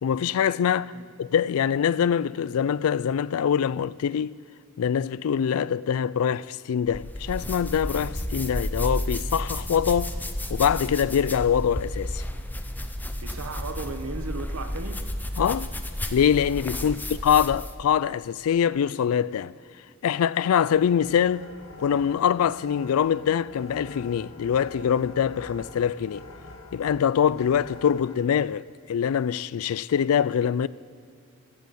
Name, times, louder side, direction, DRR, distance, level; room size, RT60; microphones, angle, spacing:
voice 1, 0.0-0.9 1.2-4.4 4.8-10.1 10.5-12.2 15.4-15.7 16.1-19.5 20.0-21.5 21.8-26.2 26.7-30.7, left 8 dB, 85° left, 0.3 m, -24 dB
sound 1, 6.9-17.8, left 1 dB, 10° left, 0.7 m, -32 dB
voice 2, 13.2-15.0 16.8-17.0, right 3 dB, 85° right, 1.1 m, -36 dB
sound 2, 20.7-28.1, left 2 dB, 65° left, 1.8 m, -45 dB
15.5 x 14.5 x 4.2 m
head